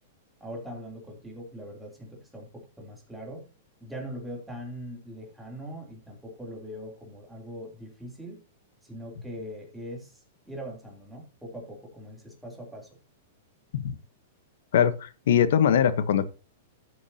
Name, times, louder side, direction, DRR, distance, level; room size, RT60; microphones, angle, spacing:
voice 1, 0.4-3.5 3.8-8.4 8.8-13.0, equal, 5° right, 3.1 m, -41 dB
voice 2, 14.7-16.3, left 8 dB, 70° left, 1.1 m, -22 dB
14.0 x 8.1 x 2.8 m
hypercardioid pair, 145°, 0 cm